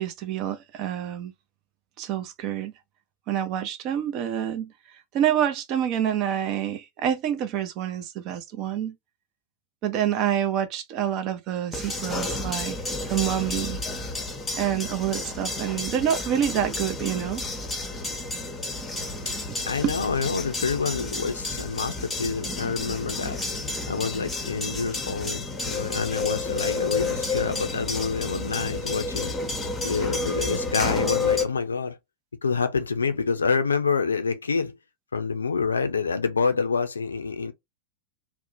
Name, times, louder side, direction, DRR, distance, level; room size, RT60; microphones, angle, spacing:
voice 1, 0.0-1.3 2.0-2.7 3.3-4.7 5.1-9.0 9.8-12.8 13.1-13.8 14.6-17.4 19.5-19.6 19.8-19.9, right 10 dB, 40° right, 0.5 m, -27 dB
sound 1, 11.7-31.5, left 3 dB, 10° left, 0.7 m, -31 dB
voice 2, 19.6-23.4 23.9-29.3 29.8-32.0 32.4-34.8 35.1-37.5, left 5 dB, 75° left, 0.4 m, -27 dB
2.6 x 2.1 x 2.6 m
figure-of-eight pair, 90°, 0 cm